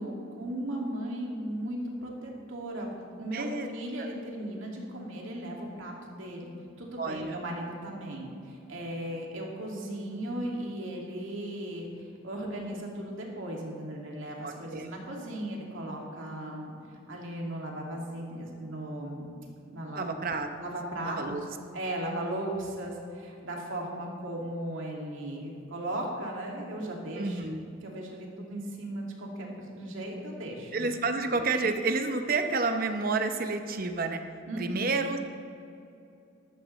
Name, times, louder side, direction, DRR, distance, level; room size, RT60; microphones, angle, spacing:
voice 1, 0.0-2.9 3.2-6.5 6.8-16.7 17.1-19.3 19.7-20.1 20.6-21.4 21.7-27.4 27.8-31.0 34.5-34.9, right 1 dB, 75° right, -1 dB, 2.4 m, -37 dB
voice 2, 3.3-3.7 4.0-4.1 7.0-7.4 14.4-14.9 20.0-20.5 21.0-21.4 27.2-27.6 30.7-34.2 34.6-35.2, right 3 dB, 45° right, 6 dB, 0.8 m, -30 dB
13.5 x 12.5 x 3.2 m, 2.7 s
head